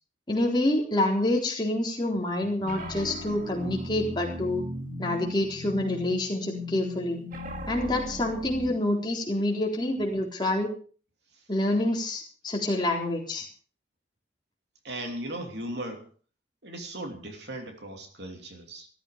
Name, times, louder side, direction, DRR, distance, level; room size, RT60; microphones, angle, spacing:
voice 1, 0.3-4.6 5.0-7.2 7.7-10.7 11.5-13.5, left 1 dB, 25° left, -1 dB, 4.0 m, -27 dB
sound 1, 2.6-8.7, left 1 dB, 45° right, 2.3 m, -37 dB
voice 2, 14.8-16.1 16.6-18.9, right 1 dB, 65° right, 4 dB, 2.9 m, -37 dB
15.5 x 14.5 x 5.2 m, 0.42 s
head